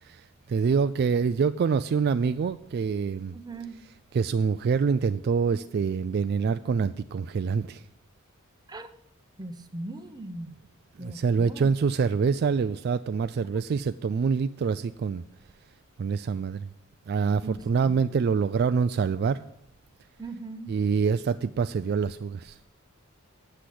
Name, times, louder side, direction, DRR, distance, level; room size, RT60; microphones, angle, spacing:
voice 1, 0.0-3.3 4.1-7.8 11.0-15.2 16.0-16.7 17.1-19.4 20.7-22.6, right 5 dB, 50° right, 12 dB, 0.3 m, -26 dB
voice 2, 3.3-3.8 8.7-8.9 9.4-10.6 11.0-11.7 17.4-18.2 20.2-20.7, right 2 dB, 20° right, 9 dB, 0.7 m, -39 dB
7.9 x 7.5 x 8.4 m, 0.78 s
head